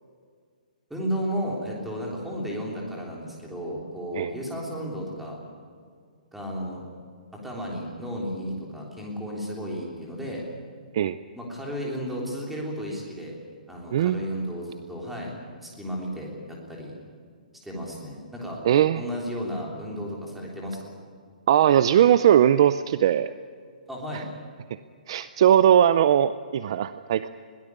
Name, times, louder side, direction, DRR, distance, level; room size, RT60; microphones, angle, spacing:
voice 1, 0.9-5.4 6.3-6.8 7.4-10.4 11.4-13.4 13.7-15.3 15.6-17.0 17.6-18.6 19.0-20.9 23.9-24.3, equal, ahead, -3 dB, 3.5 m, -33 dB
voice 2, 13.9-14.2 18.6-19.0 21.5-23.3 25.1-27.3, right 10 dB, 35° right, 14 dB, 0.5 m, -19 dB
22.0 x 17.5 x 9.7 m, 2.1 s
hypercardioid pair, 175°, 5 cm